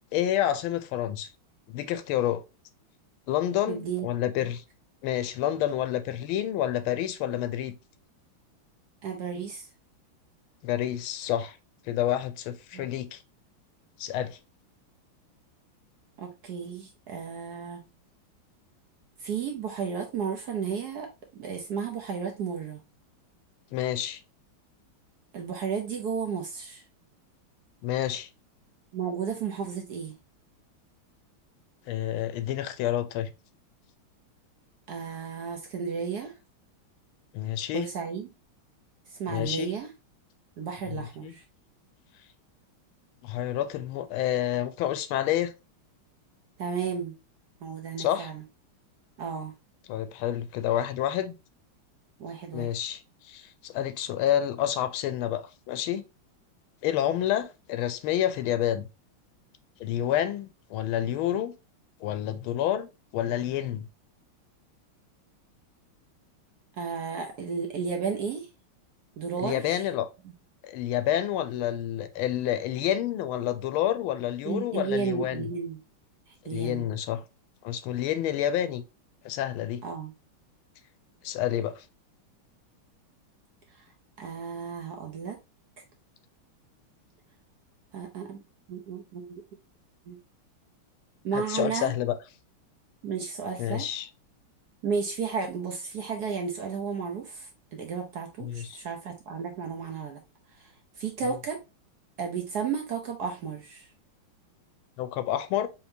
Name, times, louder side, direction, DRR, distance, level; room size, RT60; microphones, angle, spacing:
voice 1, 0.1-1.3 1.7-2.4 3.3-4.6 5.0-7.7 10.6-11.6 11.9-13.2 14.0-14.4 23.7-24.2 27.8-28.3 31.9-33.3 37.3-37.9 39.3-39.7 41.0-41.3 43.2-45.5 48.0-48.3 49.9-51.3 52.5-56.0 56.8-58.9 59.8-61.5 62.0-63.9 69.4-70.1 70.6-75.5 76.5-77.2 77.6-78.8 79.2-79.8 81.2-81.8 91.3-92.1 93.6-94.1 98.4-98.8 105.0-105.7, left 11 dB, 85° left, 1.4 m, -29 dB
voice 2, 3.7-4.1 9.0-9.7 12.7-12.9 16.2-17.8 19.2-22.8 25.3-26.8 28.9-30.1 34.9-36.3 37.7-38.3 39.1-39.9 40.6-41.4 46.6-47.1 47.6-48.4 49.2-49.5 52.2-52.7 66.8-68.5 69.2-69.7 74.4-75.8 76.4-76.9 79.8-80.1 84.2-85.4 87.9-88.4 88.7-89.4 90.1-90.2 91.2-91.9 93.0-93.9 94.8-100.2 100.6-100.7 101.0-101.6 102.2-103.9, right 6 dB, 65° right, 1.1 m, -33 dB
4.4 x 3.7 x 2.7 m
omnidirectional pair, 2.3 m